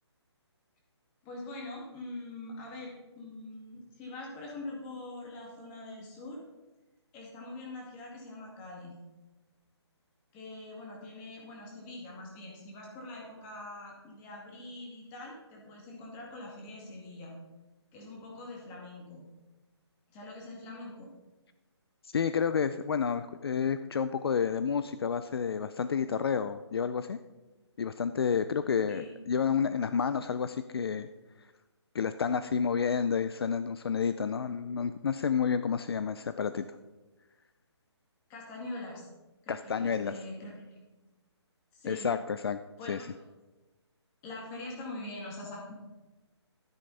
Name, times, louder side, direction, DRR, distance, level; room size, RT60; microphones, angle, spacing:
voice 1, 1.2-6.4 7.1-9.0 10.3-17.3 17.9-19.2 20.1-21.1 28.9-29.1 38.3-39.1 39.4-41.1 41.7-42.1 42.8-43.2 44.2-45.7, left 2 dB, 15° left, -1 dB, 2.3 m, -43 dB
voice 2, 22.0-27.2 27.8-31.1 31.4-31.5 31.9-36.6 39.5-40.1 41.9-42.6 42.9-43.0, left 6 dB, 60° left, 12 dB, 0.5 m, -30 dB
13.0 x 10.0 x 4.1 m, 1.1 s
hypercardioid pair, 165°, 15 cm